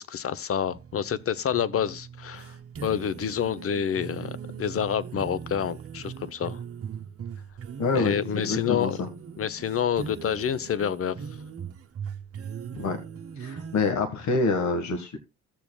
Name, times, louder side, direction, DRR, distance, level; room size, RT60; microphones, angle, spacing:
voice 1, 0.0-2.6 2.8-6.6 7.9-9.0 9.4-11.2, left 8 dB, 50° left, 0.8 m, -28 dB
sound 1, 0.7-13.9, right 7 dB, 50° right, 1.1 m, -40 dB
voice 2, 7.8-9.1 12.7-13.0 13.4-15.2, left 3 dB, 70° left, 1.7 m, -27 dB
16.5 x 7.0 x 2.3 m
cardioid pair, 90°, 30 cm